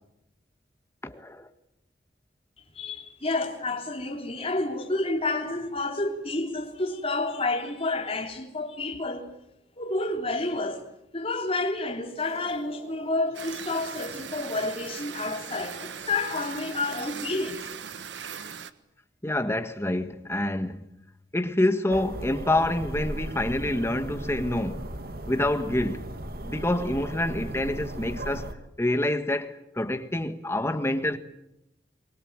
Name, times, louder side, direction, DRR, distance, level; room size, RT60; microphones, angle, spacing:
voice 1, 1.0-1.5 19.2-20.9 21.3-24.9 25.3-26.1 26.4-28.5 28.8-31.2, left 1 dB, 15° left, 1.5 m, -27 dB
voice 2, 2.7-9.3 9.8-10.8 11.1-17.6, left 2 dB, 35° left, 3.4 m, -30 dB
sound 1, 12.2-16.6, right 1 dB, 35° right, 3.5 m, -50 dB
sound 2, 13.3-18.7, right 7 dB, 75° right, 1.4 m, -39 dB
sound 3, 21.9-28.5, right 1 dB, 55° right, 2.2 m, -36 dB
25.0 x 21.0 x 8.8 m
head